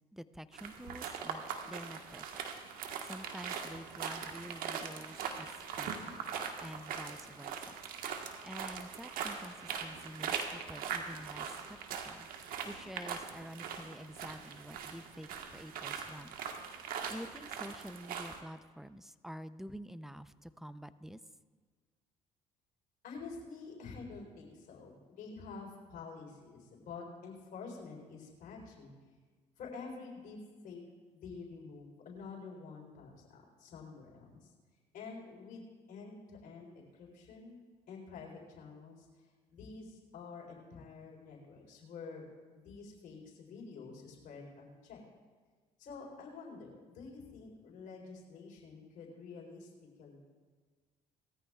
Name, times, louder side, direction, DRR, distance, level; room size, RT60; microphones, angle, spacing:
voice 1, 0.1-2.3 3.0-6.0 6.6-7.7 8.4-11.8 12.0-12.3 12.6-16.4 16.7-21.2, equal, ahead, 13 dB, 0.6 m, -48 dB
sound 1, 0.5-18.4, right 7 dB, 70° right, 1.4 m, -41 dB
voice 2, 23.0-28.9 29.6-30.4 30.6-30.8 31.1-34.5 34.9-39.1 39.5-42.3 42.5-45.0 45.8-49.7 50.0-50.2, left 4 dB, 65° left, 0 dB, 3.9 m, -48 dB
20.0 x 14.0 x 2.4 m, 1.5 s
supercardioid pair, 65°, 16 cm